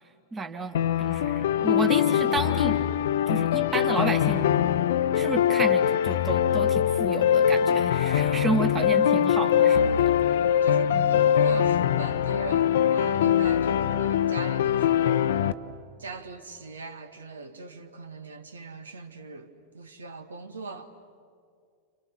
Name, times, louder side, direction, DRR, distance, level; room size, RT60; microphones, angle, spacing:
voice 1, 0.3-2.8 3.3-4.5 5.1-10.1 10.9-11.1, right 3 dB, 20° right, 1.8 m, -31 dB
sound 1, 0.8-15.5, left 9 dB, 60° left, 0.7 m, -23 dB
voice 2, 8.7-9.1 10.6-15.4 16.0-20.9, right 4 dB, 70° right, 1.7 m, -40 dB
30.0 x 28.5 x 6.3 m
figure-of-eight pair, 90°, 0 cm